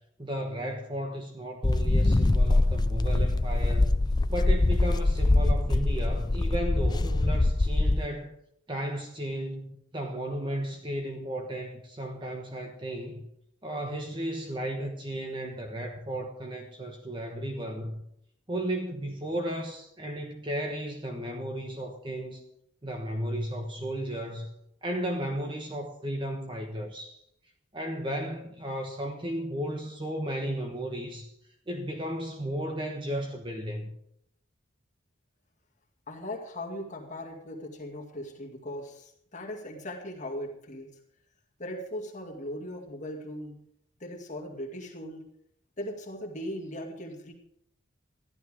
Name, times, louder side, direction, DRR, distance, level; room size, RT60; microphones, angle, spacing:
voice 1, 0.2-4.0 4.3-8.3 8.7-13.2 13.6-18.0 18.5-22.4 22.8-24.5 24.8-27.2 27.7-31.3 31.7-33.9, right 1 dB, 25° right, 1.2 m, -34 dB
sound 1, 1.6-8.1, left 2 dB, 20° left, 0.4 m, -23 dB
voice 2, 36.1-41.0 41.6-43.6 44.0-45.2 45.8-47.3, left 1 dB, 40° left, 2.1 m, -38 dB
14.0 x 12.0 x 5.0 m
head